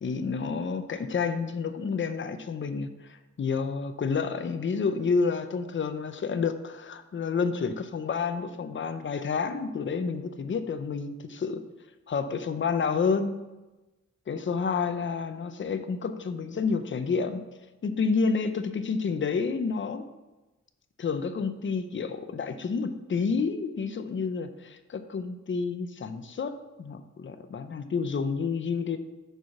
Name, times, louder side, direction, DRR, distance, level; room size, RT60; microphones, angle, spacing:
voice 1, 0.0-11.6 12.1-13.4 14.3-17.4 17.8-20.1 21.0-29.0, left 5 dB, 40° left, 9 dB, 0.5 m, -29 dB
6.7 x 4.8 x 5.9 m, 1.1 s
wide cardioid pair, 140°, 30 cm